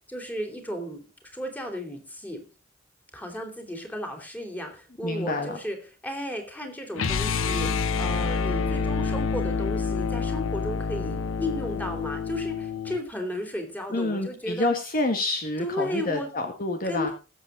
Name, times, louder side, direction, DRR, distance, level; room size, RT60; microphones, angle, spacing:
voice 1, 0.1-1.0 1.3-2.5 3.1-5.8 6.0-7.7 8.0-14.7 15.6-16.3 16.8-17.1, equal, 10° left, 3 dB, 3.6 m, -34 dB
voice 2, 5.0-5.6 13.9-17.1, left 2 dB, 45° left, 5 dB, 1.6 m, -28 dB
sound 1, 7.0-13.0, left 5 dB, 90° left, 0.8 m, -27 dB
20.5 x 8.0 x 3.9 m, 0.31 s
head